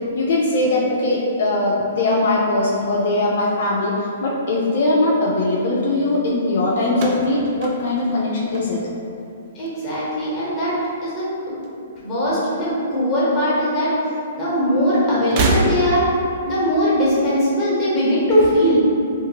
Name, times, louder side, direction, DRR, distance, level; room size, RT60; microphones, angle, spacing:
voice 1, 0.1-8.8, left 2 dB, 60° left, -4 dB, 0.4 m, -20 dB
sound 1, 6.9-9.2 9.5-10.1 11.2-12.2 12.5-12.6 13.7-13.8 15.2-16.2, right 2 dB, 40° right, 0.3 m, -26 dB
voice 2, 9.5-11.3 12.0-13.9 14.4-16.0 16.4-18.8, equal, 15° left, -8 dB, 1.0 m, -20 dB
2.5 x 2.4 x 2.8 m, 2.6 s
hypercardioid pair, 145°, 0 cm